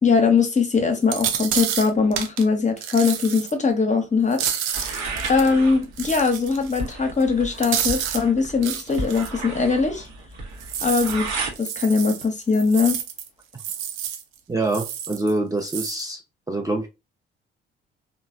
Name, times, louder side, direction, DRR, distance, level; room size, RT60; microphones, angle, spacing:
voice 1, 0.0-4.4 4.7-4.9 5.3-10.1 10.8-13.0, left 4 dB, 25° left, 0.8 m, -21 dB
sound 1, 1.0-2.4 2.8-3.5 4.3-5.5 6.0-6.9 7.2-7.3 7.6-8.2 8.6-9.3 10.6-13.3 13.5-14.2 14.7-15.3 15.6-16.0, right 9 dB, 80° right, 0.5 m, -29 dB
sound 2, 4.7-11.5, right 3 dB, 60° right, 0.9 m, -33 dB
voice 2, 14.5-16.2 16.5-16.9, right 2 dB, 10° right, 0.5 m, -25 dB
3.1 x 2.1 x 2.4 m
hypercardioid pair, 45°, 29 cm